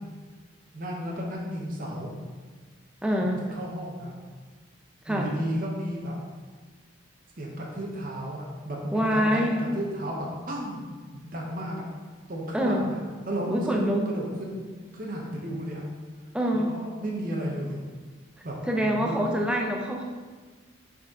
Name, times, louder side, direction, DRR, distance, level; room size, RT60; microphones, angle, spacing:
voice 1, 0.7-2.1 3.2-4.1 5.1-6.2 7.4-11.8 12.3-13.0 13.2-14.6 14.9-15.8 16.5-17.8 18.4-19.2, equal, 45° right, -2 dB, 0.9 m, -33 dB
voice 2, 3.0-3.4 5.0-5.3 8.9-9.6 12.5-12.9 13.5-14.0 16.3-16.8 18.7-20.0, equal, 5° right, 0 dB, 0.5 m, -25 dB
6.4 x 4.2 x 3.7 m, 1.4 s
head